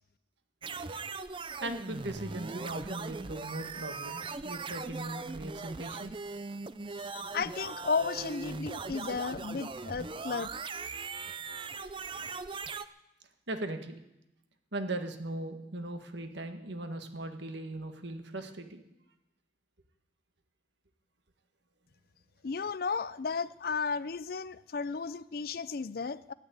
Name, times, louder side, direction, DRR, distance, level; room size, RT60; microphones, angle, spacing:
sound 1, 0.6-12.9, right 4 dB, 25° right, 0.5 m, -40 dB
voice 1, 1.6-6.2 13.5-14.0 14.7-18.8, right 2 dB, 70° right, 7 dB, 1.7 m, -39 dB
voice 2, 7.0-10.5 22.4-26.3, left 5 dB, 50° left, 16 dB, 0.4 m, -34 dB
13.0 x 9.5 x 9.7 m, 0.90 s
head